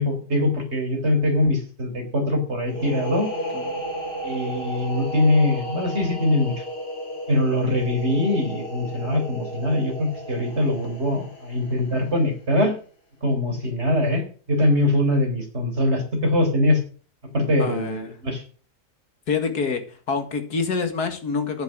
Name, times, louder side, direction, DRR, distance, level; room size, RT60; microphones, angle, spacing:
voice 1, 0.0-3.3 4.2-6.5 7.3-12.8 13.2-16.8 17.3-18.4, left 1 dB, 40° right, 3 dB, 4.6 m, -22 dB
sound 1, 2.7-12.2, equal, 90° left, 4.5 m, -33 dB
voice 2, 17.6-18.2 19.3-21.6, left 5 dB, 70° left, 7 dB, 2.5 m, -27 dB
10.0 x 9.8 x 6.3 m, 0.40 s
omnidirectional pair, 1.7 m